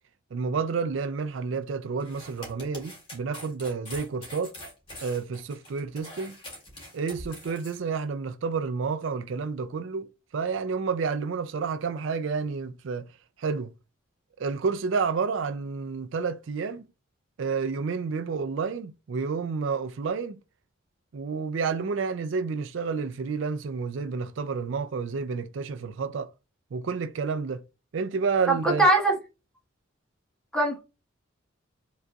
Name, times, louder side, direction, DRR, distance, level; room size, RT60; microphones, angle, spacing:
voice 1, 0.3-4.5 5.0-6.4 6.9-13.1 13.4-13.7 14.4-16.9 17.4-20.4 21.1-26.3 26.7-27.6 27.9-28.9, right 5 dB, 65° right, 0.4 m, -30 dB
sound 1, 2.0-7.8, left 1 dB, 25° left, 2.4 m, -44 dB
voice 2, 28.5-29.1 30.5-30.8, right 2 dB, 5° left, 1.3 m, -21 dB
5.1 x 3.9 x 2.3 m
head